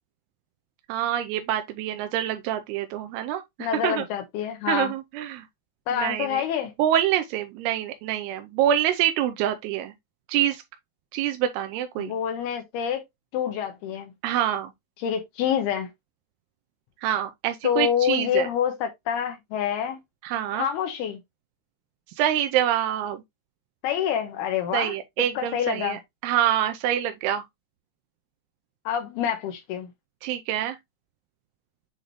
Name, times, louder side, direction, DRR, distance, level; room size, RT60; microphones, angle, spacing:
voice 1, 0.9-4.0 4.7-5.4 5.9-6.4 6.8-9.9 10.3-10.6 11.1-12.1 14.2-14.7 17.0-18.5 20.2-20.7 22.2-23.2 24.7-27.4 30.2-30.8, right 11 dB, 85° right, 2.6 m, -26 dB
voice 2, 3.6-4.9 5.9-6.7 12.0-13.0 13.3-14.1 15.0-15.9 17.6-20.0 20.5-21.2 23.8-25.0 25.4-26.0 28.9-29.9, left 9 dB, 80° left, 2.8 m, -27 dB
7.6 x 4.0 x 3.0 m
omnidirectional pair, 4.7 m